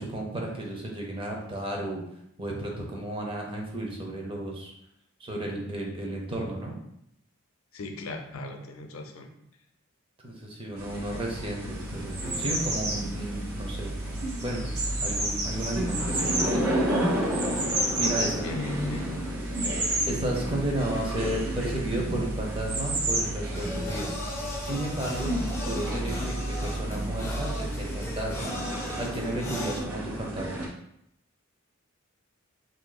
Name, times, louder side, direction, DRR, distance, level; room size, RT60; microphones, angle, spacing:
voice 1, 0.0-2.0 2.4-4.7 5.2-6.8 10.2-13.9 14.4-14.7 15.0-16.5 18.0-18.5 20.0-24.1 24.6-25.4 25.7-28.5 29.0-30.6, right 1 dB, 25° right, -1 dB, 0.7 m, -33 dB
voice 2, 7.7-9.3 18.4-19.1, left 2 dB, 85° left, 4 dB, 0.5 m, -36 dB
sound 1, 10.8-30.7, right 1 dB, 80° right, 0.9 m, -32 dB
sound 2, 11.8-23.2, right 1 dB, 55° right, 0.9 m, -32 dB
sound 3, 23.5-29.8, left 1 dB, 15° left, 0.5 m, -37 dB
2.7 x 2.7 x 3.9 m, 0.77 s
head